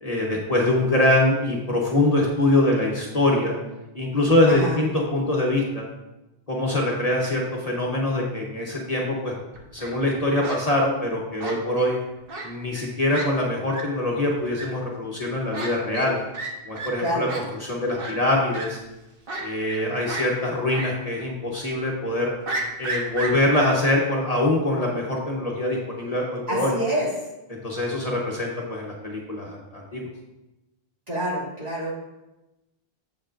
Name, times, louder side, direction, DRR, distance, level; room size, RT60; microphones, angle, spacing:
voice 1, 0.0-3.5 3.9-5.8 6.5-9.3 9.7-12.0 12.4-16.2 16.6-18.8 19.4-22.3 22.8-26.7 27.5-30.1, left 1 dB, 40° left, -3 dB, 1.0 m, -23 dB
Fowl, 9.5-9.9 10.4-10.6 11.4-11.9 12.3-12.5 12.8-12.9 13.1-13.2 13.7-13.8 14.5-14.6 15.5-15.7 15.9-16.1 16.3-16.5 16.8-16.9 17.3-17.4 18.0-18.1 18.5-18.7 19.3-19.8 20.1-20.2 20.7-20.9 21.2-21.3 22.5-23.7, right 3 dB, 65° right, 1.4 m, -31 dB
voice 2, 17.0-17.3 26.5-27.1 31.1-31.9, right 1 dB, 40° right, -8 dB, 2.6 m, -27 dB
8.2 x 7.3 x 2.5 m, 0.99 s
omnidirectional pair, 1.0 m